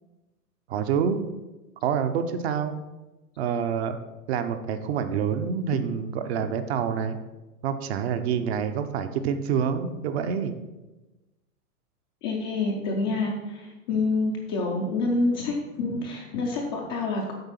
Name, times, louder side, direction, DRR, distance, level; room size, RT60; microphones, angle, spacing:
voice 1, 0.7-1.2 1.8-2.8 3.4-4.0 4.3-7.2 7.6-10.5, right 7 dB, 45° right, 8 dB, 0.7 m, -27 dB
voice 2, 12.2-17.3, left 3 dB, 20° left, -1 dB, 0.4 m, -27 dB
7.9 x 4.5 x 5.8 m, 1.1 s
hypercardioid pair, 140°, 47 cm